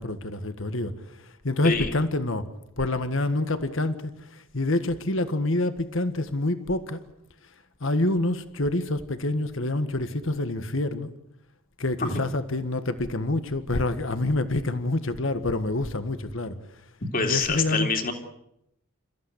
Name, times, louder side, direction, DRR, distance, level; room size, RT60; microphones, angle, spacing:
voice 1, 0.0-2.5 2.8-7.0 7.8-11.1 11.8-16.6 17.2-17.9, left 2 dB, 65° left, 10 dB, 1.6 m, -27 dB
voice 2, 17.1-18.1, left 4 dB, 40° left, 5 dB, 3.3 m, -25 dB
29.0 x 15.0 x 10.0 m, 0.81 s
head